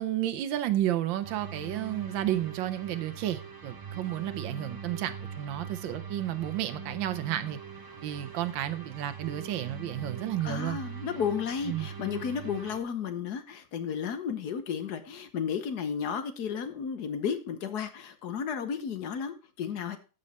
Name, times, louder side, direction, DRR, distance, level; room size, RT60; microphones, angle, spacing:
voice 1, 0.0-7.6 8.0-10.8 11.7-11.9, right 12 dB, 85° right, 1.4 m, -32 dB
sound 1, 1.2-12.8, right 5 dB, 30° right, 0.4 m, -42 dB
voice 2, 10.4-20.0, left 7 dB, 60° left, 1.4 m, -33 dB
14.0 x 5.4 x 4.1 m
omnidirectional pair, 2.0 m